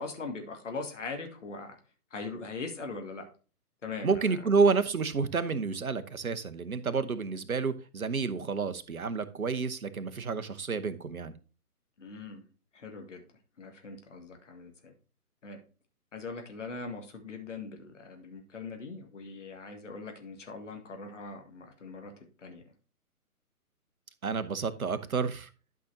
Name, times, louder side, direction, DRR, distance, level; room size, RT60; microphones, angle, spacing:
voice 1, 0.0-1.8 2.1-3.3 3.8-4.4 4.6-4.7 12.0-12.4 12.7-13.2 13.6-14.9 15.4-15.6 16.1-22.6, left 4 dB, 50° left, 4 dB, 2.0 m, -41 dB
voice 2, 4.0-11.3 24.2-25.5, right 5 dB, 65° right, 11 dB, 1.0 m, -29 dB
12.0 x 6.0 x 2.7 m, 0.35 s
figure-of-eight pair, 135°, 46 cm